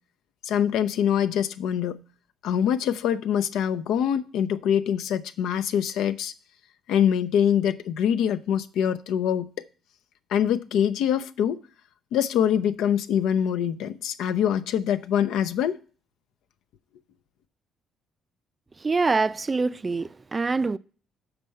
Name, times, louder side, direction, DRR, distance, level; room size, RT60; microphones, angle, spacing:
voice 1, 0.4-2.0 2.4-6.3 6.9-9.5 10.3-11.6 12.1-15.8, left 9 dB, 80° left, 0.5 m, -24 dB
voice 2, 18.8-20.8, right 3 dB, 30° right, 0.4 m, -25 dB
6.8 x 4.5 x 6.3 m
supercardioid pair, 75°, 0 cm